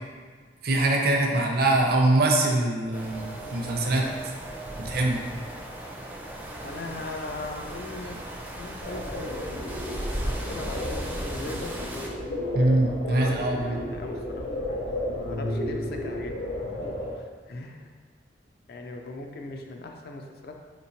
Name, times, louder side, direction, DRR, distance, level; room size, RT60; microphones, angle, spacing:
voice 1, 0.6-4.0 4.8-5.2 12.5-13.8, right 2 dB, 60° right, 0 dB, 0.5 m, -23 dB
sound 1, 2.9-12.1, right 1 dB, 10° right, 0.4 m, -36 dB
voice 2, 6.6-8.2 8.6-9.4 10.2-11.7 13.1-14.5 15.1-17.2 17.5-17.9 18.7-20.5, left 2 dB, 60° left, 3 dB, 0.4 m, -39 dB
sound 2, 8.8-17.1, left 1 dB, 80° left, 1.4 m, -33 dB
4.2 x 3.0 x 2.7 m, 1.5 s
head